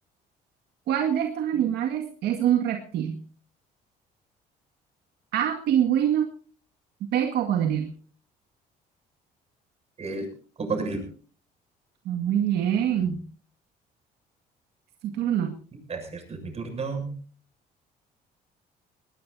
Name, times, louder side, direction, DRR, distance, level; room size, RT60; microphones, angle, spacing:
voice 1, 0.9-3.2 5.3-6.3 7.1-7.9 12.1-13.2 15.0-15.5, right 10 dB, 80° right, 3 dB, 2.0 m, -24 dB
voice 2, 10.0-10.3 10.6-11.0 15.9-17.1, right 3 dB, 40° right, 4 dB, 7.3 m, -31 dB
20.5 x 20.0 x 2.8 m, 0.42 s
cardioid pair, 110°, 17 cm